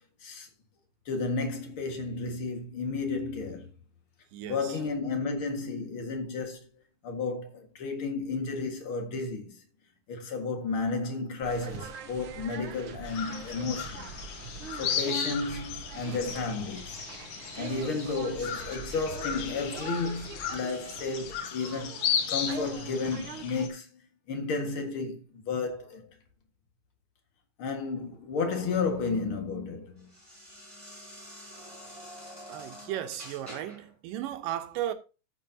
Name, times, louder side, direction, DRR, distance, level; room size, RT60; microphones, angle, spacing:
voice 1, 1.1-3.7 4.5-6.7 7.0-9.6 10.1-14.1 14.8-17.0 17.6-23.9 24.3-26.1 27.6-30.1, left 4 dB, 45° left, 2.2 m, -32 dB
voice 2, 4.3-4.8 32.5-34.9, right 12 dB, 85° right, 2.6 m, -35 dB
sound 1, 11.4-23.7, right 6 dB, 70° right, 1.2 m, -44 dB
sound 2, 13.1-23.7, left 7 dB, 80° left, 3.0 m, -35 dB
sound 3, 28.1-33.9, equal, 5° left, 4.7 m, -48 dB
14.0 x 7.2 x 2.8 m
omnidirectional pair, 3.8 m